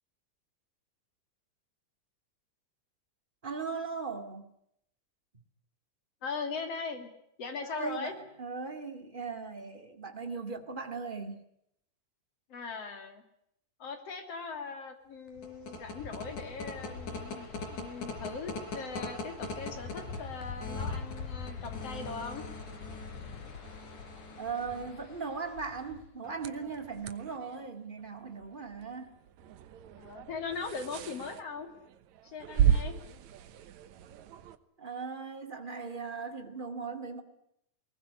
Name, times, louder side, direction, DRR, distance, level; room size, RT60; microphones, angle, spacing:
voice 1, 3.4-4.5 7.6-11.4 24.4-29.2 34.8-37.2, right 5 dB, 20° right, 7 dB, 1.8 m, -38 dB
voice 2, 6.2-7.1 7.4-8.1 12.5-13.2 13.8-22.4 30.0-31.7 32.2-33.0, left 5 dB, 50° left, 7 dB, 3.8 m, -40 dB
sound 1, 15.3-26.1, left 3 dB, 70° left, 5.2 m, -40 dB
sound 2, 26.2-34.6, right 9 dB, 65° right, 2.3 m, -34 dB
21.5 x 19.5 x 9.8 m, 0.75 s
omnidirectional pair, 3.7 m